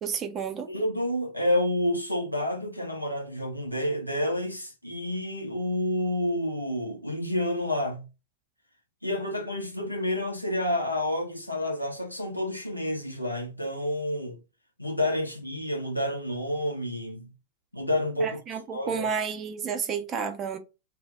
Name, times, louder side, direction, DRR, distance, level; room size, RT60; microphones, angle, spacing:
voice 1, 0.0-0.7 18.2-20.6, right 6 dB, 30° right, 0.5 m, -31 dB
voice 2, 0.7-8.0 9.0-14.4 14.8-17.3 17.7-18.3 18.7-19.1, left 1 dB, 90° left, 0.6 m, -29 dB
2.0 x 2.0 x 3.3 m
figure-of-eight pair, 90°, 0 cm